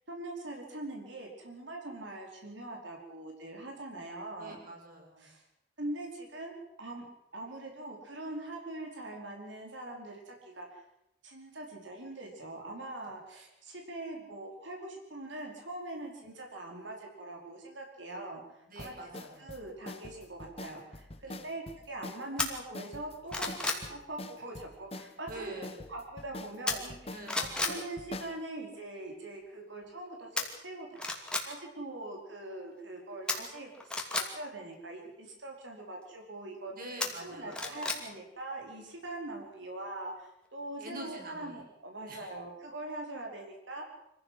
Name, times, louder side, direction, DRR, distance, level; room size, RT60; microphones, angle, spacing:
voice 1, 0.1-4.6 5.2-5.4 5.8-7.1 7.3-10.8 11.2-25.5 25.9-36.7 37.2-43.8, right 2 dB, 75° right, 1 dB, 4.8 m, -42 dB
voice 2, 4.4-5.3 18.7-19.5 21.2-21.4 25.3-25.8 27.1-27.4 36.7-37.8 40.8-41.6 42.1-42.3, right 1 dB, 50° right, 1 dB, 6.6 m, -46 dB
sound 1, 18.8-28.4, left 2 dB, 30° left, 1.3 m, -45 dB
sound 2, 22.4-22.5 23.0-23.9 26.7-27.0 27.3-27.8 30.4-30.5 30.9-31.5 33.3-34.3 37.0-38.0 38.4-38.5, left 2 dB, 5° left, 2.6 m, -32 dB
25.5 x 15.5 x 7.9 m, 0.83 s
head